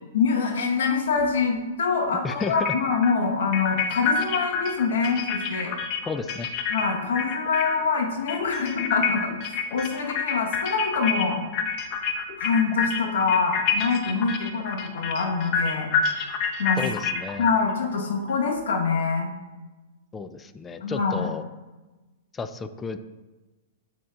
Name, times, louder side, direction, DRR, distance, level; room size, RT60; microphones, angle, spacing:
voice 1, 0.1-5.7 6.7-11.5 12.4-15.9 16.6-16.8 17.4-19.3 20.8-21.3, left 5 dB, 75° left, 2 dB, 1.4 m, -25 dB
sound 1, 1.2-1.3 2.4-7.9 8.2-18.4, left 6 dB, 40° left, 0.8 m, -28 dB
voice 2, 2.2-2.7 6.1-6.5 16.8-17.5 20.1-21.4 22.3-23.0, left 5 dB, 15° left, 10 dB, 0.4 m, -32 dB
7.6 x 6.7 x 2.5 m, 1.2 s
hypercardioid pair, 120°, 0 cm